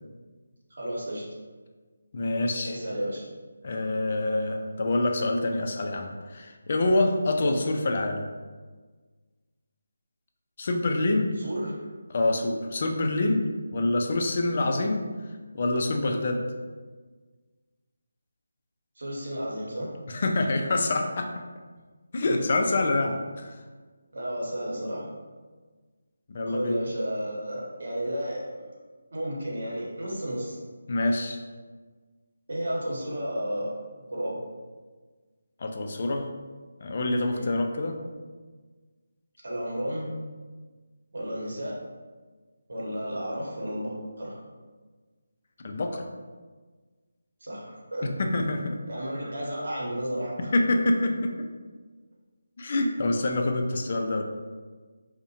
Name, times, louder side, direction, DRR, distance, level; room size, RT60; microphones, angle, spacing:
voice 1, 0.7-1.2 2.6-3.3 7.4-7.6 11.4-11.9 19.0-19.9 22.2-22.3 24.1-25.0 26.5-28.6 29.1-30.6 32.5-33.7 34.1-34.4 37.2-37.5 39.4-40.1 41.1-41.7 42.7-44.3 47.4-48.1 48.9-50.5, equal, 65° right, -4 dB, 0.8 m, -32 dB
voice 2, 2.1-2.8 3.6-8.2 10.6-11.3 12.1-13.5 13.7-15.0 15.5-16.4 20.1-21.3 22.1-23.6 26.3-26.8 30.9-31.4 35.6-36.2 36.8-38.0 45.6-46.0 48.0-48.8 50.5-51.3 52.6-54.3, left 2 dB, 45° left, 3 dB, 0.3 m, -26 dB
2.6 x 2.0 x 2.8 m, 1.4 s
figure-of-eight pair, 165°, 0 cm